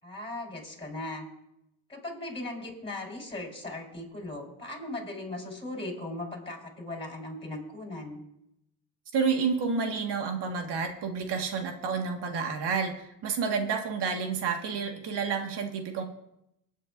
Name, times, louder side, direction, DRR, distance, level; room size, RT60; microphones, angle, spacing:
voice 1, 0.0-1.3 1.9-8.2, left 2 dB, 10° left, -1 dB, 4.5 m, -38 dB
voice 2, 9.1-16.0, right 5 dB, 60° right, 4 dB, 1.8 m, -30 dB
24.0 x 9.1 x 2.6 m, 0.82 s
supercardioid pair, 70°, 46 cm